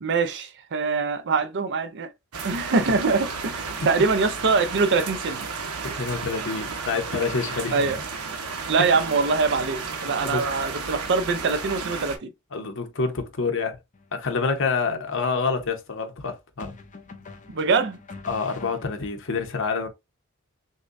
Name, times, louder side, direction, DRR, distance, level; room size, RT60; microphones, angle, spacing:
voice 1, 0.0-2.1 2.4-5.5 7.7-8.0 8.7-12.3 17.5-18.0, right 4 dB, 55° right, 0.5 m, -23 dB
sound 1, 2.3-12.2, right 4 dB, 80° right, 1.0 m, -33 dB
voice 2, 6.0-8.0 10.2-10.4 12.5-13.8 14.1-16.8 18.3-19.9, left 4 dB, 60° left, 0.9 m, -27 dB
sound 2, 13.9-14.2 16.6-19.3, left 3 dB, 35° left, 0.6 m, -44 dB
6.4 x 2.3 x 2.6 m
head